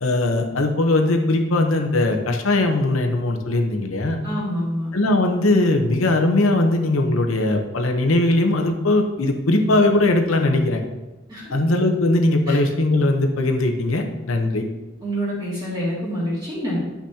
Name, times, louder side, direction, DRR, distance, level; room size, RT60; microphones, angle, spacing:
voice 1, 0.0-4.2 4.9-10.8 11.5-14.6, left 2 dB, 85° left, 4 dB, 0.9 m, -20 dB
voice 2, 4.2-4.9 11.3-11.4 12.5-12.6 15.0-16.8, equal, 20° right, -8 dB, 2.0 m, -26 dB
10.0 x 6.0 x 2.8 m, 1.1 s
head